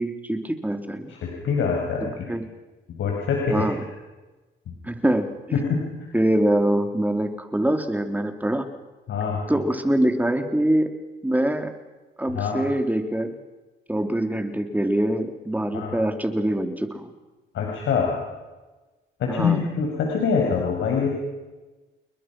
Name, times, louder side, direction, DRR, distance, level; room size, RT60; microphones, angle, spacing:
voice 1, 0.0-1.1 2.3-2.4 3.5-3.8 4.8-5.6 6.1-8.7 9.5-10.9 11.2-11.7 12.2-13.4 13.9-17.1 19.3-19.6, right 1 dB, 10° right, 7 dB, 3.2 m, -24 dB
voice 2, 1.1-2.3 2.9-3.6 4.7-4.8 5.5-5.9 9.1-9.4 12.3-12.6 15.7-15.9 17.5-18.1 19.2-21.2, left 5 dB, 75° left, -1 dB, 6.0 m, -24 dB
30.0 x 21.5 x 6.2 m, 1.2 s
cardioid pair, 90°, 20 cm